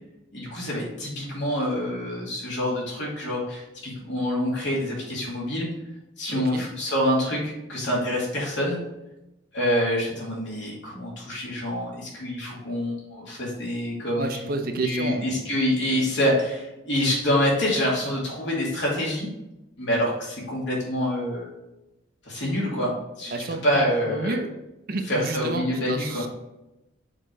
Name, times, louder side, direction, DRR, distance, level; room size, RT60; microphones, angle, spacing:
voice 1, 0.3-5.7 6.2-8.8 9.5-14.4 14.8-19.3 19.8-21.5 22.2-24.4 25.1-26.3, equal, 65° left, -4 dB, 2.5 m, -26 dB
voice 2, 6.3-6.7 14.2-15.6 23.3-24.5 24.9-26.3, right 2 dB, 45° right, 6 dB, 0.6 m, -30 dB
6.4 x 4.7 x 3.9 m, 0.94 s
head